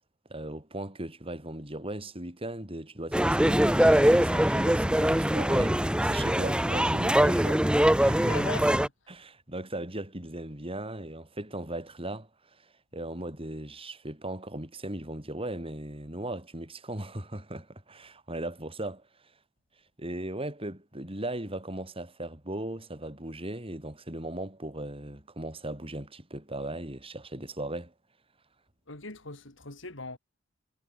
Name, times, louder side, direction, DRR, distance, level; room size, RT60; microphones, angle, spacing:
voice 1, 0.3-8.4 9.1-12.3 12.6-19.0 20.0-27.9, right 1 dB, 30° right, 6.3 m, -37 dB
sound 1, 3.1-8.9, right 1 dB, 5° right, 1.0 m, -23 dB
voice 2, 8.2-8.9 28.9-30.2, left 3 dB, 70° left, 3.6 m, -40 dB
head